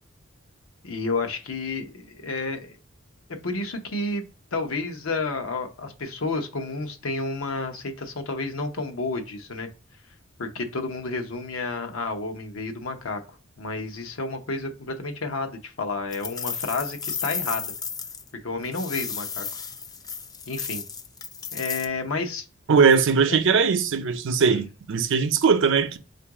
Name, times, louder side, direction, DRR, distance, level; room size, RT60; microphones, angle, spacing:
voice 1, 0.8-2.8 3.3-4.2 4.5-9.7 10.4-13.2 13.6-17.7 18.4-19.4 20.5-20.8 21.5-22.4 23.3-23.4 24.5-24.6, left 3 dB, 80° left, 0.8 m, -30 dB
sound 1, 16.1-18.3 18.6-21.9, left 6 dB, 20° left, 0.3 m, -33 dB
voice 2, 22.7-26.0, right 5 dB, 65° right, 0.5 m, -20 dB
3.8 x 2.5 x 4.6 m
head